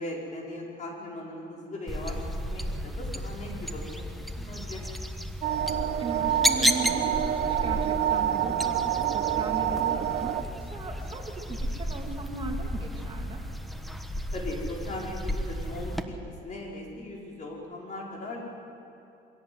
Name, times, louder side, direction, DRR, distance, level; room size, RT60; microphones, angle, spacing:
voice 1, 0.0-4.0 4.5-4.9 14.3-16.1 16.4-18.4, left 1 dB, 45° left, -2 dB, 5.5 m, -38 dB
sound 1, 1.9-16.0, equal, ahead, 1.3 m, -33 dB
voice 2, 4.4-4.7 5.6-13.4, right 3 dB, 30° right, 0 dB, 2.9 m, -38 dB
sound 2, 5.4-10.4, right 11 dB, 75° right, 1.2 m, -27 dB
23.5 x 16.5 x 8.1 m, 2.7 s
cardioid pair, 110°, 17 cm